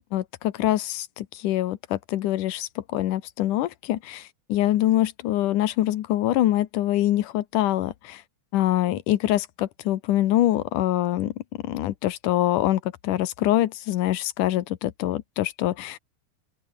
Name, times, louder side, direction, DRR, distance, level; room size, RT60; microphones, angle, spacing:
voice 1, 0.1-8.2 8.5-11.3 11.6-16.0, left 14 dB, 90° left, 2.7 m, -24 dB
open air
omnidirectional pair, 3.5 m